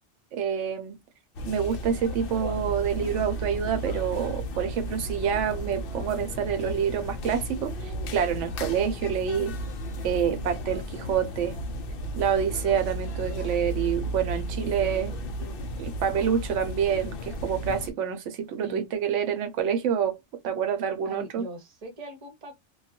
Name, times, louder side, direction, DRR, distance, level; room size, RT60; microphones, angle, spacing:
voice 1, 0.3-1.0 1.5-9.6 10.0-11.6 12.2-15.2 15.8-20.2 20.4-21.5, right 8 dB, 85° right, 0.9 m, -27 dB
sound 1, 1.3-17.9, equal, 60° left, 0.6 m, -34 dB
voice 2, 21.0-22.6, right 2 dB, 35° right, 0.8 m, -40 dB
2.3 x 2.2 x 2.7 m
omnidirectional pair, 1.2 m